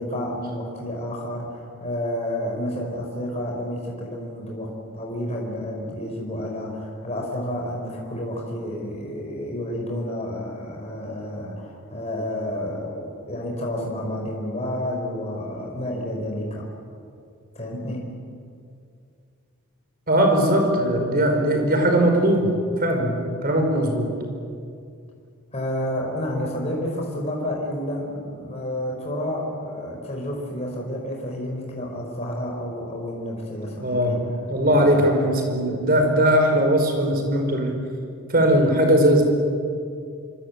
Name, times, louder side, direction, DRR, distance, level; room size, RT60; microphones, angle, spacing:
voice 1, 0.0-16.7 17.5-18.1 25.5-34.2 34.7-35.0, left 1 dB, 30° left, -1 dB, 4.7 m, -30 dB
voice 2, 20.1-22.5 22.8-24.1 33.8-34.2 34.5-37.7 38.3-39.2, right 1 dB, 40° right, 3 dB, 5.3 m, -19 dB
27.5 x 25.0 x 8.4 m, 2.3 s
head